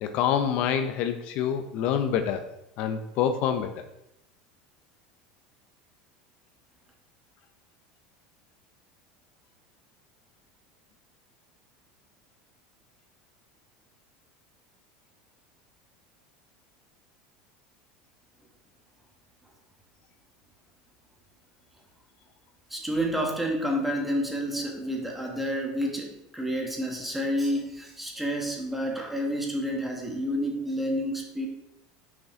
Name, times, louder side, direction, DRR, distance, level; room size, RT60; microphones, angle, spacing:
voice 1, 0.0-2.4 2.8-3.8, left 8 dB, 55° left, 7 dB, 0.5 m, -26 dB
voice 2, 22.7-31.5, equal, 5° right, 0 dB, 1.5 m, -29 dB
5.8 x 5.3 x 3.7 m, 0.83 s
supercardioid pair, 125°, 3 cm